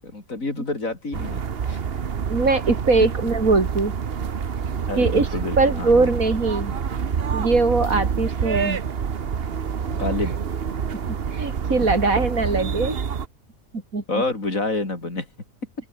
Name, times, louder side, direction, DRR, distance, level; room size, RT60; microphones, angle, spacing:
voice 1, 0.0-1.8 4.9-6.1 9.9-10.3 14.1-15.3, left 2 dB, 70° left, 4.9 m, -28 dB
sound 1, 1.1-13.3, right 7 dB, 45° right, 1.2 m, -27 dB
voice 2, 2.3-3.9 5.0-5.3 5.6-6.8 7.3-8.8 11.1-13.0 13.7-14.2, right 3 dB, 75° right, 4.0 m, -21 dB
open air
omnidirectional pair, 1.5 m